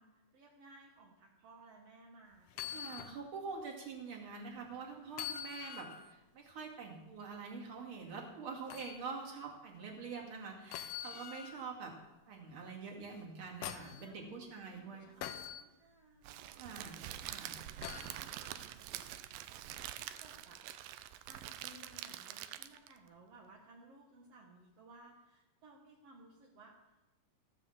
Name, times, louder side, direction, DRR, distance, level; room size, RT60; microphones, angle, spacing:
voice 1, 0.0-3.1 13.8-16.7 17.2-19.2 19.6-20.9 21.3-27.0, right 2 dB, 60° right, -1 dB, 1.8 m, -60 dB
sound 1, 2.5-3.2 3.6-3.7 5.1-6.1 8.7-9.0 10.7-11.7 13.1-14.0 15.2-15.6 17.8-18.2 20.0-20.1, left 10 dB, 85° left, 2.7 m, -44 dB
voice 2, 2.7-12.0 12.3-15.1 16.6-17.0 17.3-17.6, right 5 dB, 40° right, -1 dB, 2.6 m, -45 dB
Crackle, 16.2-23.0, right 12 dB, 80° right, 2.2 m, -46 dB
14.5 x 7.8 x 7.3 m, 1.0 s
omnidirectional pair, 4.3 m